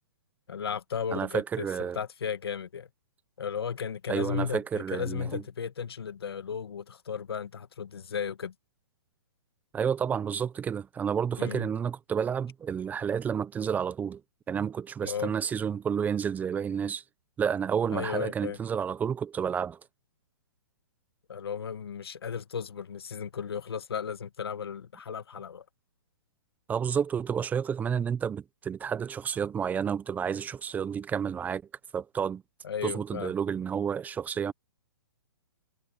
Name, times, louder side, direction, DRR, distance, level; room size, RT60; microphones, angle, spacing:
voice 1, 0.5-2.9 3.4-8.5 11.4-11.7 15.0-15.3 17.9-18.6 21.3-25.6 32.6-33.3, left 7 dB, 80° left, 2.1 m, -35 dB
voice 2, 1.1-2.0 4.1-5.4 9.7-14.2 14.5-17.0 17.4-19.8 26.7-31.6 31.9-32.4 32.8-34.5, right 7 dB, 15° right, 0.8 m, -30 dB
hypercardioid pair, 140°, 13 cm